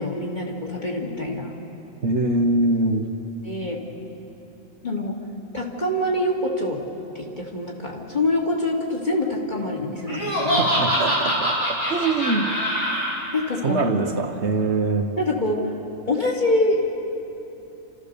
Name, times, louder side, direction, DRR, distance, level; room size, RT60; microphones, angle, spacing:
voice 1, 0.0-1.5 3.4-3.8 4.8-5.2 5.5-6.8 7.1-10.6 13.3-13.8 15.2-15.6 16.1-16.8, left 1 dB, 35° left, -2 dB, 2.5 m, -25 dB
voice 2, 2.0-3.1 10.6-12.5 13.6-15.1, right 3 dB, 55° right, 4 dB, 1.3 m, -23 dB
Laughter, 10.1-13.1, equal, 80° left, 6.0 m, -23 dB
28.5 x 14.5 x 6.8 m, 2.9 s
omnidirectional pair, 1.4 m